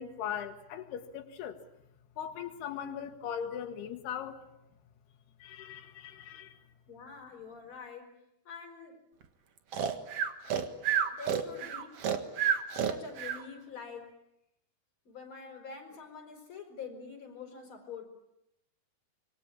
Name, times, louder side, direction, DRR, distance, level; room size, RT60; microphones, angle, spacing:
voice 1, 0.0-1.6 2.2-4.4 5.4-6.5, left 8 dB, 85° left, 5 dB, 3.4 m, -39 dB
voice 2, 6.9-8.2 8.4-9.0 11.1-12.2 12.8-14.2 15.1-18.0, left 5 dB, 30° left, 4 dB, 5.6 m, -46 dB
Breathing, 9.7-13.4, right 8 dB, 50° right, 2.0 m, -30 dB
26.5 x 23.0 x 8.8 m, 0.82 s
omnidirectional pair, 4.5 m